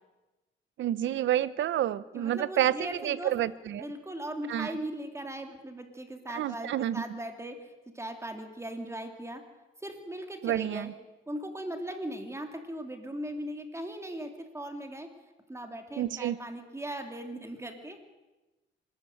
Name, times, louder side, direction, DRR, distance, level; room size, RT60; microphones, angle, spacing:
voice 1, 0.8-3.9 4.5-4.7 6.3-7.2 10.4-10.9 16.0-16.4, right 11 dB, 70° right, 17 dB, 0.9 m, -29 dB
voice 2, 2.1-3.4 3.7-9.4 9.8-10.9 11.3-15.1 15.5-18.0, right 1 dB, 15° right, 5 dB, 3.0 m, -39 dB
25.5 x 13.0 x 9.3 m, 1.1 s
cardioid pair, 90°, 20 cm